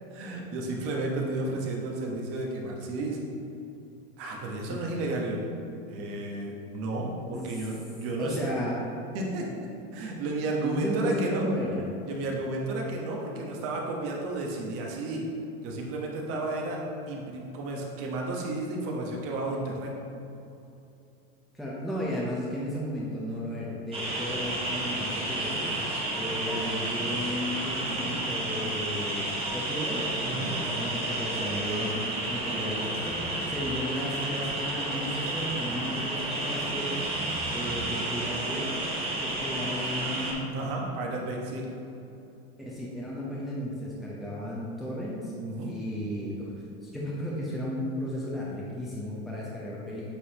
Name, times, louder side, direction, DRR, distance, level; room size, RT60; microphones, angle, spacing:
voice 1, 0.1-3.2 4.2-5.5 5.9-8.4 9.1-9.7 9.9-11.5 12.0-15.3 15.6-20.0 30.2-30.5 40.5-41.7 45.4-45.7, right 2 dB, 45° right, -1 dB, 1.2 m, -32 dB
voice 2, 8.2-8.8 10.6-11.8 21.5-25.7 26.2-30.0 30.5-37.0 37.5-38.8 39.2-40.5 42.6-45.3 45.6-46.5 46.8-50.1, equal, ahead, -6 dB, 0.8 m, -34 dB
sound 1, 23.9-40.3, right 1 dB, 20° right, 1.2 m, -31 dB
8.2 x 4.0 x 2.9 m, 2.8 s
supercardioid pair, 125°, 32 cm